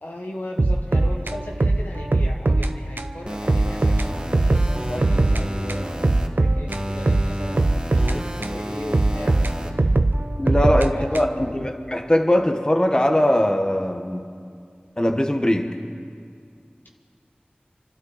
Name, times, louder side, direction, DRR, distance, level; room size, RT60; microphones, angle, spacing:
voice 1, 0.0-10.0 10.7-11.6, left 1 dB, 70° left, 0 dB, 1.2 m, -37 dB
sound 1, 0.6-2.7 3.0-3.1 3.5-5.4 5.7-8.6 8.9-11.5, right 2 dB, 70° right, 0.7 m, -21 dB
sound 2, 3.3-6.3 6.7-9.7, equal, 30° right, 2.0 m, -31 dB
voice 2, 10.4-14.2 15.0-15.7, left 1 dB, 25° left, 4 dB, 1.1 m, -21 dB
28.0 x 12.0 x 4.1 m, 2.3 s
wide cardioid pair, 40°, 3 cm